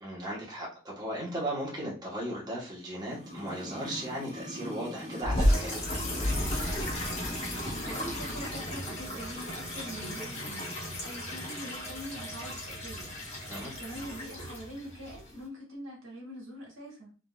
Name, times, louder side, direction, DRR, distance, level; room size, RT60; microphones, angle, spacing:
voice 1, 0.0-5.9 13.5-13.7, right 1 dB, 20° right, -5 dB, 1.0 m, -36 dB
sound 1, 3.0-8.5 8.8-8.9, equal, 40° right, 1.5 m, -43 dB
sound 2, 5.2-9.6, equal, 5° right, 1.4 m, -31 dB
sound 3, 5.3-15.4, left 1 dB, 30° left, 0.9 m, -37 dB
voice 2, 7.4-10.7 11.0-13.1 13.4-17.2, right 1 dB, 80° right, -2 dB, 1.3 m, -44 dB
3.5 x 2.4 x 2.2 m, 0.35 s
head